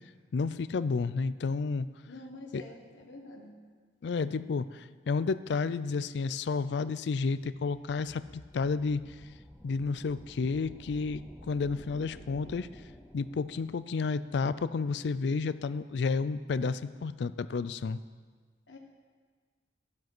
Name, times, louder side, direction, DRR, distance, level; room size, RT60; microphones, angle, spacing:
voice 1, 0.3-1.9 2.5-2.6 4.0-9.1 9.6-12.7 13.1-18.0, left 4 dB, 70° left, 15 dB, 0.4 m, -31 dB
voice 2, 2.0-3.6 18.7-18.8, left 2 dB, 85° left, 0 dB, 1.4 m, -47 dB
sound 1, 7.7-14.0, equal, 5° left, 0.6 m, -52 dB
12.0 x 7.5 x 6.0 m, 1.5 s
head